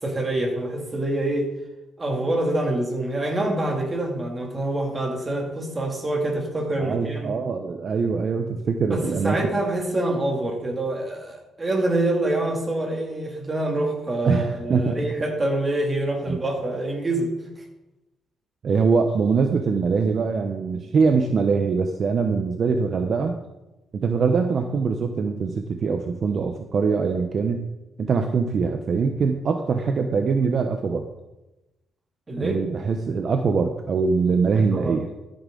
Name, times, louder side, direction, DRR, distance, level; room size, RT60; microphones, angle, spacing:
voice 1, 0.0-1.5 2.0-7.4 8.9-17.6 32.3-32.6 34.5-35.0, right 1 dB, 25° right, 1 dB, 2.7 m, -26 dB
voice 2, 6.8-9.4 14.2-15.0 16.3-16.4 18.6-23.4 24.0-27.6 28.0-31.0 32.4-35.1, right 5 dB, 50° right, 5 dB, 0.8 m, -23 dB
13.5 x 8.7 x 3.9 m, 1.0 s
cardioid pair, 90°, 0 cm